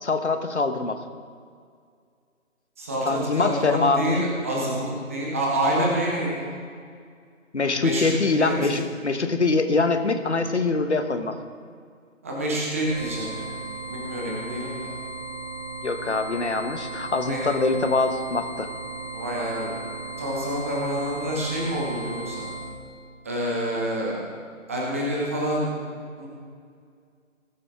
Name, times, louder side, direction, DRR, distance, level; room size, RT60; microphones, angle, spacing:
voice 1, 0.0-1.0 3.0-4.3 7.5-11.4 15.8-18.7, left 3 dB, 55° left, 7 dB, 1.3 m, -24 dB
voice 2, 2.8-6.5 7.8-8.1 8.3-8.8 12.2-13.5 13.9-14.9 17.3-17.5 19.1-19.7 20.2-22.5 23.2-24.2 24.7-25.7 26.2-26.3, right 1 dB, 10° right, -4 dB, 1.1 m, -27 dB
sound 1, 12.8-22.8, right 3 dB, 75° left, 2.7 m, -36 dB
19.5 x 8.2 x 3.7 m, 2.1 s
figure-of-eight pair, 155°, 40 cm